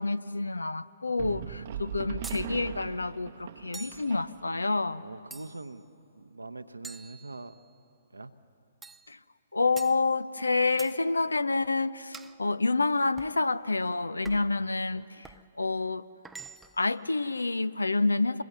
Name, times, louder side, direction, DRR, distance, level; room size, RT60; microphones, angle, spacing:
voice 1, 0.0-5.0 9.1-9.2 9.5-15.3 15.6-16.0 16.8-18.4, left 3 dB, 80° left, 17 dB, 0.6 m, -28 dB
sound 1, 1.2-4.7, right 10 dB, 45° right, 0.8 m, -40 dB
voice 2, 1.5-2.3 5.0-5.9 6.2-7.6 8.1-8.3 14.3-14.7, right 2 dB, 85° right, 8 dB, 0.9 m, -44 dB
sound 2, 2.2-2.5 3.7-4.1 5.3-5.8 6.8-7.7 8.8-9.1 9.8-10.0 10.8-11.0 12.1-12.4 13.2-13.4 14.2-14.6 15.2-15.5 16.2-16.8, right 4 dB, 5° right, 0.4 m, -46 dB
25.5 x 22.0 x 6.8 m, 2.7 s
figure-of-eight pair, 125°, 0 cm